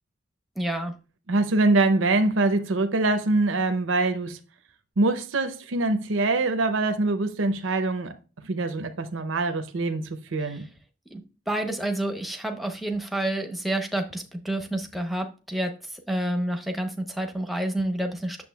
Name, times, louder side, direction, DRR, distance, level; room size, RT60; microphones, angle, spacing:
voice 1, 0.6-0.9 10.4-10.6 11.1-11.2 11.5-18.4, right 1 dB, ahead, 0.7 m, -29 dB
voice 2, 1.3-4.4 5.0-8.1 8.4-10.7, right 2 dB, 80° right, 0.7 m, -24 dB
8.5 x 6.7 x 2.3 m
head